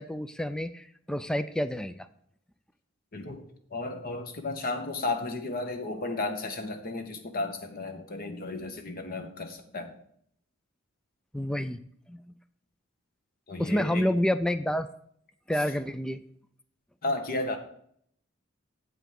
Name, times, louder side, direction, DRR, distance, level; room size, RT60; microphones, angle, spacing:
voice 1, 0.0-2.1 11.3-11.8 12.1-12.2 13.6-14.9 15.5-16.2, left 1 dB, 5° left, 11 dB, 0.3 m, -28 dB
voice 2, 3.1-3.4 3.7-10.0 13.5-14.1 17.0-17.6, left 2 dB, 45° left, 6 dB, 1.1 m, -33 dB
8.0 x 5.0 x 7.4 m, 0.66 s
head